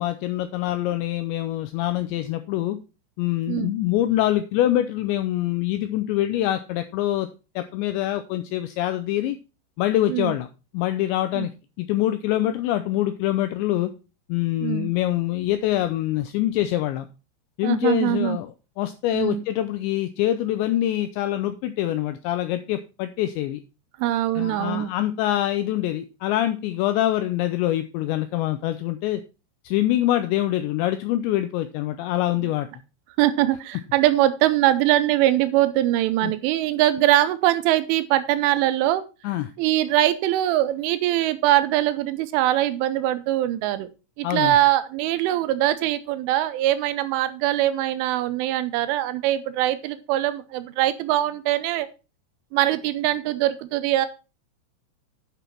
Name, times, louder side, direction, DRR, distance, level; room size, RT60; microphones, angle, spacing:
voice 1, 0.0-2.8 3.2-7.3 7.6-9.4 9.8-10.5 10.7-11.5 11.8-13.9 14.3-17.1 17.6-23.6 24.4-29.2 29.6-32.7 36.2-36.3 39.2-39.5 44.2-44.6, left 13 dB, 85° left, 10 dB, 2.6 m, -25 dB
voice 2, 14.6-14.9 17.6-18.4 19.1-19.4 24.0-24.9 33.2-39.0 39.6-43.9 44.2-51.9 52.5-54.1, right 14 dB, 80° right, 13 dB, 3.0 m, -22 dB
10.0 x 6.1 x 4.4 m, 0.31 s
omnidirectional pair, 5.8 m